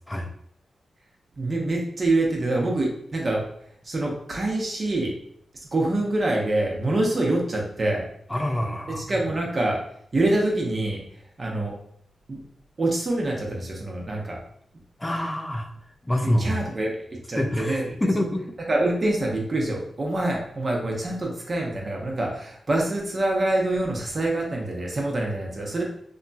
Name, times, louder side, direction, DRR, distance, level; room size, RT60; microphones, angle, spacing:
voice 1, 1.3-3.5 3.8-5.1 5.7-8.0 9.0-9.8 10.1-11.0 11.4-11.7 12.3-12.4 12.8-14.4 16.2-18.3 18.7-25.8, right 2 dB, 45° right, -1 dB, 0.8 m, -25 dB
voice 2, 8.3-9.0 15.0-15.7 16.0-16.6 17.3-18.4, left 1 dB, 15° left, 4 dB, 0.5 m, -26 dB
2.9 x 2.6 x 2.3 m, 0.66 s
cardioid pair, 65°, 0 cm